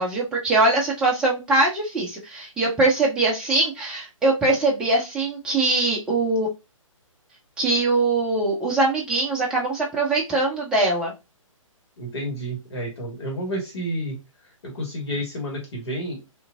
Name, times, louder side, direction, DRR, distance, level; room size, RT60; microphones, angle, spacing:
voice 1, 0.0-6.5 7.6-11.1, right 2 dB, 5° right, -4 dB, 0.7 m, -22 dB
voice 2, 12.0-14.1 14.6-16.3, equal, 50° left, -1 dB, 1.4 m, -30 dB
2.9 x 2.5 x 2.5 m, 0.25 s
figure-of-eight pair, 135°, 18 cm